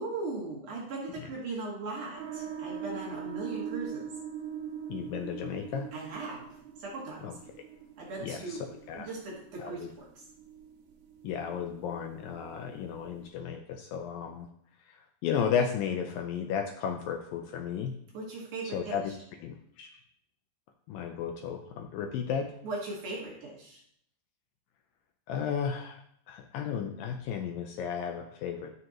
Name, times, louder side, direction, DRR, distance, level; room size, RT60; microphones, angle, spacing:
voice 1, 0.0-4.1 5.9-6.5 6.8-7.3 8.0-8.6 9.0-10.2 18.1-19.0 22.6-23.8, right 3 dB, 55° right, -4 dB, 2.9 m, -38 dB
sound 1, 2.1-13.3, right 8 dB, 70° right, 3.0 m, -43 dB
voice 2, 4.9-5.9 7.2-7.3 8.2-8.6 8.9-9.1 9.6-9.9 11.2-14.5 15.2-17.9 18.7-19.0 19.4-19.9 20.9-22.5 25.3-26.0 26.3-28.8, left 7 dB, 85° left, 4 dB, 2.0 m, -33 dB
14.5 x 6.5 x 3.0 m, 0.69 s
omnidirectional pair, 4.9 m